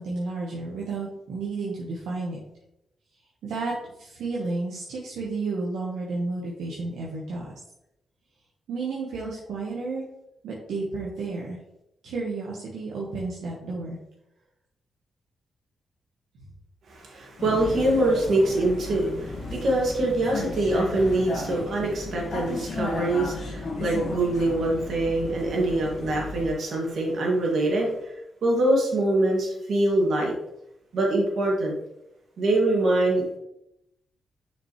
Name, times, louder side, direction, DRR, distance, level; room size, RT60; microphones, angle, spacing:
voice 1, 0.0-2.4 3.4-3.7 4.0-7.4 8.7-10.0 10.4-11.6 12.0-14.0, right 3 dB, 90° right, -5 dB, 1.2 m, -32 dB
voice 2, 16.9-28.1 28.4-30.3 30.9-31.7 32.4-33.2, right 1 dB, 70° right, -1 dB, 2.0 m, -24 dB
Vehicle, 17.4-26.5, left 2 dB, 70° left, 1.5 m, -34 dB
6.2 x 5.1 x 3.1 m, 0.81 s
cardioid pair, 75°, 0 cm